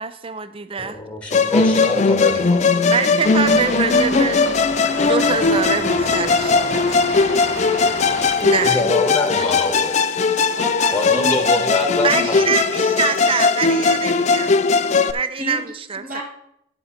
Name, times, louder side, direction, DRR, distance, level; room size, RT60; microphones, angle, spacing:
voice 1, 0.0-1.0 2.9-4.4 5.1-7.4 8.4-9.0 9.4-9.5 12.0-14.5 15.1-16.2, right 5 dB, 30° right, 12 dB, 0.5 m, -25 dB
voice 2, 0.8-2.9 8.6-10.0 10.9-12.5, left 2 dB, 5° left, 4 dB, 1.2 m, -24 dB
Musical instrument, 1.3-15.1, left 4 dB, 40° left, 0.4 m, -18 dB
sound 1, 3.2-8.8, right 2 dB, 70° right, 1.1 m, -31 dB
voice 3, 3.4-4.9 10.4-12.3 15.4-16.2, equal, 55° right, -5 dB, 1.7 m, -31 dB
12.0 x 5.3 x 4.3 m, 0.76 s
head